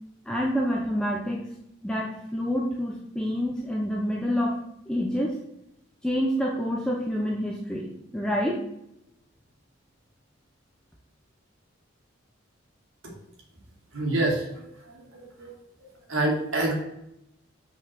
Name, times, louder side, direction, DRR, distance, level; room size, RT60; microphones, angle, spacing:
voice 1, 0.2-1.5 1.8-4.6 4.9-5.4 6.0-8.6, equal, 5° left, -2 dB, 0.8 m, -27 dB
voice 2, 13.9-15.5 16.1-16.7, right 2 dB, 80° right, -1 dB, 2.7 m, -27 dB
6.1 x 5.7 x 6.6 m, 0.81 s
head